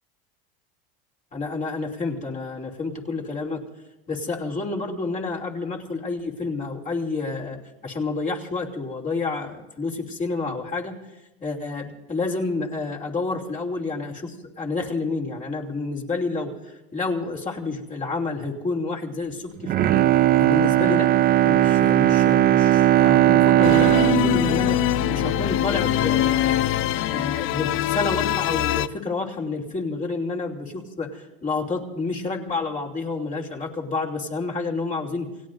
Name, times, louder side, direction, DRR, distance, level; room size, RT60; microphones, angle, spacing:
voice 1, 1.3-3.6 4.1-11.0 11.4-16.5 16.9-20.0 20.4-21.1 21.4-26.7 27.1-35.3, left 3 dB, 25° left, 0 dB, 2.9 m, -29 dB
Bowed string instrument, 19.6-25.9 26.3-26.4, right 13 dB, 30° right, 0.5 m, -18 dB
sound 1, 23.6-28.9, left 14 dB, 45° left, 0.5 m, -23 dB
29.0 x 17.0 x 2.6 m, 0.99 s
supercardioid pair, 105°, 30 cm